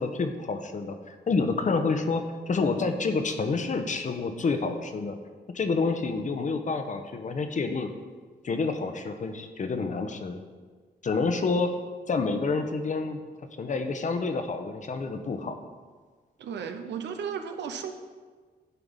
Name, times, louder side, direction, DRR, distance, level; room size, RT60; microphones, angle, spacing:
voice 1, 0.0-5.1 5.5-7.9 8.4-10.4 11.0-11.7 12.1-13.2 13.6-15.6, left 4 dB, 45° left, 7 dB, 0.9 m, -28 dB
voice 2, 16.4-17.9, right 7 dB, 85° right, 7 dB, 0.9 m, -34 dB
11.0 x 4.8 x 5.4 m, 1.5 s
cardioid pair, 100°, 18 cm